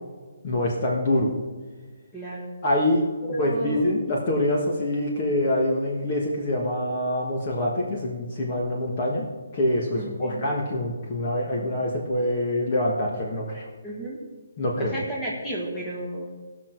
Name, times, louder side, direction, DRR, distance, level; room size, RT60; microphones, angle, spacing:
voice 1, 0.4-1.3 2.6-13.7 14.6-15.0, left 1 dB, 30° left, -2 dB, 1.4 m, -25 dB
voice 2, 2.1-2.5 3.3-3.8 9.9-10.6 13.8-14.2 14.8-16.3, right 1 dB, 5° left, -6 dB, 1.8 m, -32 dB
18.5 x 6.2 x 4.6 m, 1.4 s
hypercardioid pair, 175°, 0 cm